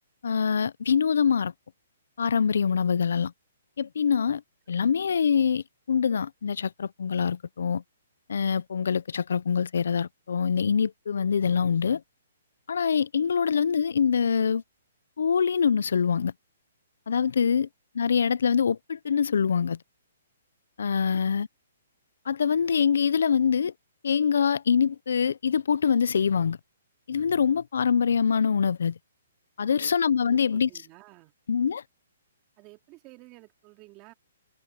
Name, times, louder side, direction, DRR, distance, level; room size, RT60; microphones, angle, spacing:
voice 1, 0.2-1.5 2.2-3.3 3.8-4.4 4.7-7.8 8.3-12.0 12.7-14.6 15.2-16.3 17.1-17.7 17.9-19.8 20.8-21.5 22.3-23.7 24.0-26.6 27.1-29.0 29.6-30.7 31.5-31.8, left 6 dB, 80° left, 0.5 m, -24 dB
voice 2, 29.6-29.9 30.2-31.3 32.6-34.1, right 21 dB, 25° right, 3.1 m, -52 dB
hypercardioid pair, 160°, 0 cm